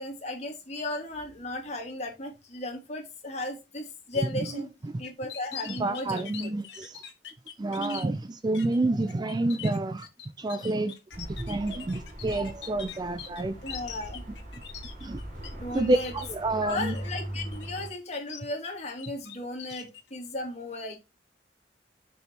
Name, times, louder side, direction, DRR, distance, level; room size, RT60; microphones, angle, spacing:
voice 1, 0.0-4.7 5.0-6.5 13.6-14.2 15.6-16.1 16.6-21.0, left 2 dB, 40° left, 2.5 m, -35 dB
sound 1, 5.0-8.0 8.5-8.8 9.1-15.5 15.7-16.3 16.7-17.1 17.5-18.7 19.0-20.0, left 9 dB, 70° left, 1.5 m, -42 dB
voice 2, 5.7-7.0 7.6-10.1 10.4-13.6 15.0-15.2 15.7-16.9, right 2 dB, 25° right, 0.4 m, -29 dB
sound 2, 11.1-17.9, right 1 dB, 50° right, 2.5 m, -40 dB
6.7 x 6.2 x 2.9 m
head